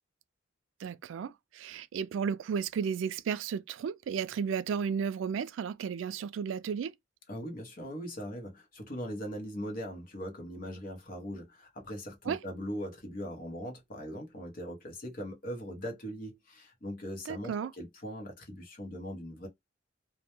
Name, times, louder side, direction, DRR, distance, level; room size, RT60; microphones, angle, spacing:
voice 1, 0.8-6.9 12.3-12.4 17.3-17.7, right 7 dB, 75° right, 0.3 m, -33 dB
voice 2, 7.3-19.5, equal, 45° left, 0.8 m, -40 dB
2.2 x 2.1 x 2.9 m
head